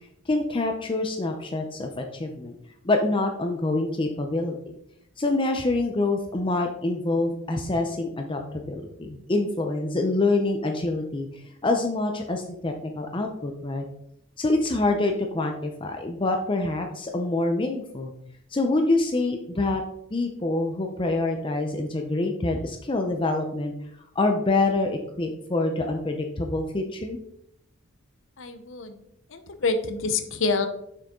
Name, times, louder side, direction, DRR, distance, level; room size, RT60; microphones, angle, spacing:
voice 1, 0.3-2.6 2.8-4.7 5.2-11.3 11.6-13.8 14.4-18.1 18.5-19.8 20.1-23.7 24.2-27.2, left 2 dB, 25° left, 4 dB, 0.6 m, -26 dB
voice 2, 28.4-29.0 29.3-30.7, left 3 dB, 65° left, 9 dB, 0.8 m, -27 dB
6.6 x 6.3 x 3.7 m, 0.76 s
head